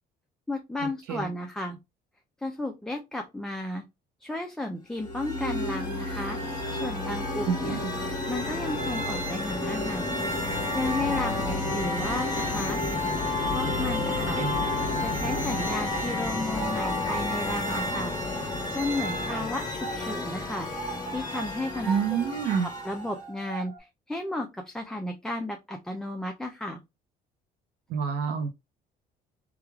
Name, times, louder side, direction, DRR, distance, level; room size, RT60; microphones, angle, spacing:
voice 1, 0.5-1.8 2.4-3.8 4.2-6.4 6.7-7.8 8.3-12.8 13.5-14.4 15.0-18.1 18.7-20.7 21.1-22.2 22.6-26.8, left 2 dB, 5° left, 0.3 m, -34 dB
sound 1, 5.0-23.2, left 2 dB, 25° left, 1.2 m, -31 dB
sound 2, 5.0-16.3, equal, 35° right, 1.1 m, -35 dB
voice 2, 7.5-7.9 14.4-14.6 19.3-19.4 21.9-22.7 27.9-28.5, right 6 dB, 70° right, 0.5 m, -28 dB
sound 3, 14.2-23.8, right 5 dB, 90° right, 1.2 m, -41 dB
3.1 x 2.3 x 2.2 m
cardioid pair, 110°, 17 cm